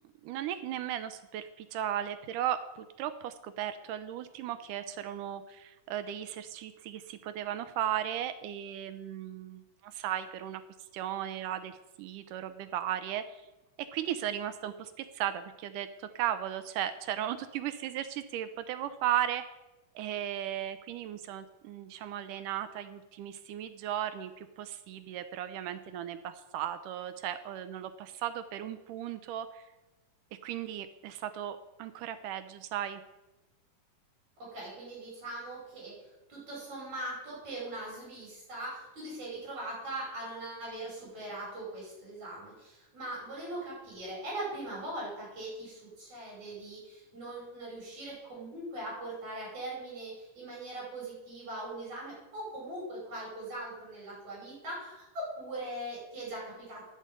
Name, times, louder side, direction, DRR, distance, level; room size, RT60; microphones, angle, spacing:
voice 1, 0.2-10.6 10.9-13.4 13.9-19.4 20.0-29.7 30.4-33.0, right 11 dB, 80° right, 11 dB, 2.1 m, -36 dB
voice 2, 34.4-35.9 36.3-56.9, right 1 dB, 60° right, -4 dB, 6.8 m, -41 dB
10.0 x 6.5 x 8.9 m, 1.0 s
omnidirectional pair, 3.7 m